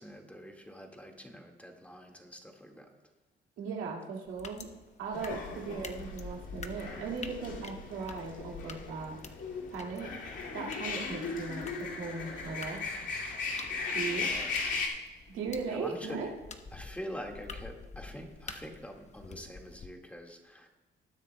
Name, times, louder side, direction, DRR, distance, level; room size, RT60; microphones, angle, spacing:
voice 1, 0.0-2.9 14.1-14.5 15.7-16.3 16.7-20.7, equal, 5° left, 2 dB, 1.7 m, -45 dB
voice 2, 3.6-4.7 5.0-9.2 9.7-10.1 10.5-12.8 13.9-14.3 15.3-16.3, right 5 dB, 90° right, 0 dB, 2.1 m, -38 dB
sound 1, 4.3-19.9, left 4 dB, 35° left, 0.9 m, -50 dB
sound 2, 5.1-14.9, left 4 dB, 70° left, 2.3 m, -37 dB
20.0 x 9.8 x 2.2 m, 1.2 s
cardioid pair, 90°, 20 cm